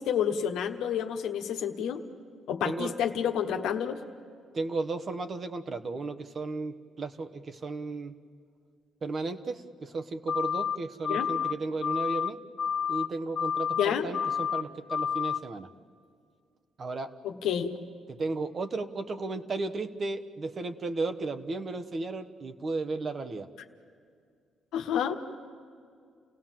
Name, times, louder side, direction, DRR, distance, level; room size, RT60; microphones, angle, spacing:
voice 1, 0.0-2.0 2.5-4.0 11.1-11.3 13.7-14.1 17.2-17.7 24.7-25.2, left 8 dB, 85° left, 5 dB, 1.3 m, -29 dB
voice 2, 2.6-2.9 4.5-8.1 9.0-12.4 12.9-15.7 16.8-17.1 18.1-23.5, right 3 dB, 45° right, 7 dB, 1.2 m, -34 dB
sound 1, 10.3-10.8 11.0-11.5 11.8-12.3 12.6-13.1 13.4-13.8 14.1-14.6 14.9-15.4, left 7 dB, 55° left, 0.9 m, -29 dB
30.0 x 17.0 x 7.6 m, 2.3 s
cardioid pair, 90°, 0 cm